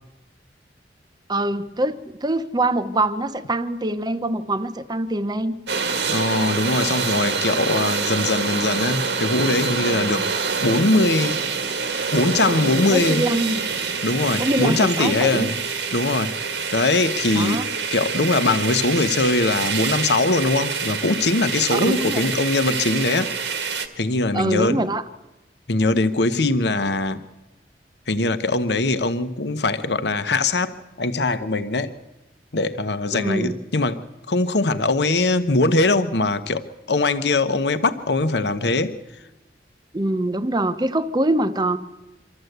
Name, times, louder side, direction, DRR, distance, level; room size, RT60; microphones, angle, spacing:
voice 1, 1.3-5.5 10.2-10.3 12.9-13.6 14.4-15.5 17.3-17.6 21.7-22.3 24.3-25.0 33.1-33.6 39.9-41.8, right 1 dB, 25° right, 10 dB, 0.8 m, -24 dB
sound 1, 5.7-23.9, right 5 dB, 85° right, 1.6 m, -26 dB
voice 2, 6.1-10.3 10.6-11.4 12.1-13.3 14.0-15.6 15.9-16.3 16.7-17.6 17.9-23.3 24.0-24.8 25.7-27.2 28.1-31.9 32.5-39.0, left 2 dB, 70° left, 11 dB, 1.0 m, -21 dB
24.5 x 13.5 x 8.0 m, 1.0 s
head